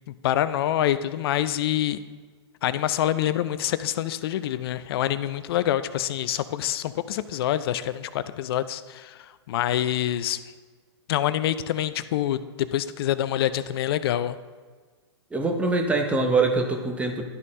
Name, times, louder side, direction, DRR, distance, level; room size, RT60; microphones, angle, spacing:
voice 1, 0.1-2.0 2.6-10.4 11.1-14.4, left 12 dB, 60° left, 14 dB, 0.5 m, -26 dB
voice 2, 15.3-17.2, right 3 dB, 10° right, 3 dB, 0.9 m, -23 dB
12.0 x 4.2 x 3.7 m, 1.5 s
hypercardioid pair, 120°, 14 cm